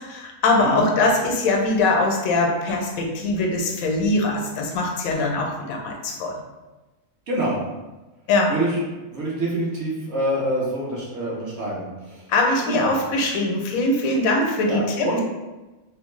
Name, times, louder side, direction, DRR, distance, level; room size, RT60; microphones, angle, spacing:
voice 1, 0.0-6.4 8.3-8.5 12.3-15.1, left 2 dB, 85° left, 1 dB, 1.0 m, -22 dB
voice 2, 0.6-0.9 7.3-7.6 8.5-8.8 9.1-12.3 12.6-13.0 14.7-15.2, right 1 dB, 55° right, -5 dB, 0.9 m, -26 dB
3.1 x 2.0 x 3.1 m, 1.1 s
omnidirectional pair, 1.4 m